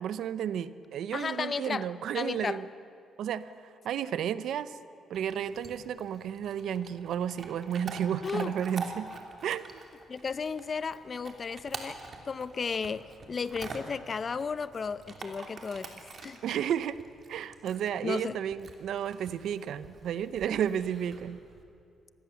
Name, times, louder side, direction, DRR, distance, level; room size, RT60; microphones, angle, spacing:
voice 1, 0.0-2.6 3.2-3.5 3.8-4.8 5.1-9.1 9.4-9.8 16.4-17.0 17.3-21.4, right 9 dB, 75° right, 15 dB, 0.7 m, -32 dB
voice 2, 1.1-1.9 2.1-2.6 8.2-8.5 10.1-12.0 12.2-15.9 16.2-16.4 18.0-18.3, left 5 dB, 40° left, 15 dB, 0.7 m, -34 dB
Chewing mastication / Dog, 5.1-21.6, right 4 dB, 45° right, 2.9 m, -46 dB
25.0 x 19.0 x 7.1 m, 2.5 s
cardioid pair, 90°, 0 cm